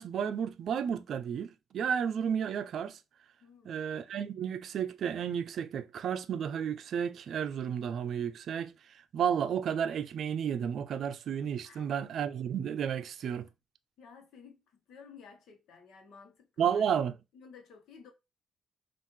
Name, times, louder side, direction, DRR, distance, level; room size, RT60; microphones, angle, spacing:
voice 1, 0.0-3.0 3.6-8.7 9.1-13.5 16.6-17.1, right 8 dB, 65° right, 0.5 m, -32 dB
voice 2, 3.4-3.8 11.6-11.9 14.0-16.9 17.3-18.1, left 5 dB, 75° left, 1.1 m, -54 dB
5.6 x 2.5 x 3.1 m
cardioid pair, 90°, 0 cm